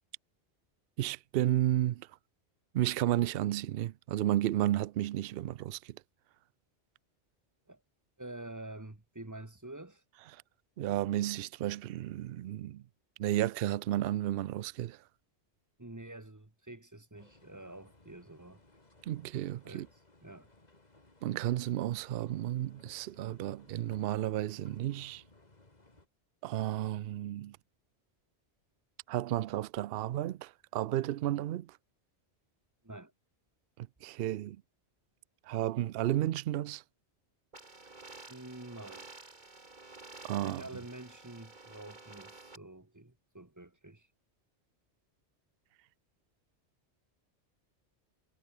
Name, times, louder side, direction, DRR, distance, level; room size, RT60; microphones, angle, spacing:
voice 1, 1.0-2.1 2.7-5.9 10.3-10.4 10.8-12.8 13.2-15.0 19.0-19.9 21.2-25.2 26.4-27.6 29.1-31.7 33.8-34.6 35.5-36.8 40.3-40.6, right 13 dB, 65° right, 0.7 m, -32 dB
voice 2, 8.2-10.0 15.8-18.6 19.6-20.5 32.8-33.1 38.3-39.1 40.4-44.1, right 2 dB, 15° right, 1.5 m, -47 dB
sound 1, 17.1-26.1, left 2 dB, 35° left, 2.8 m, -62 dB
sound 2, 37.5-42.6, right 3 dB, 40° right, 2.5 m, -51 dB
omnidirectional pair, 1.2 m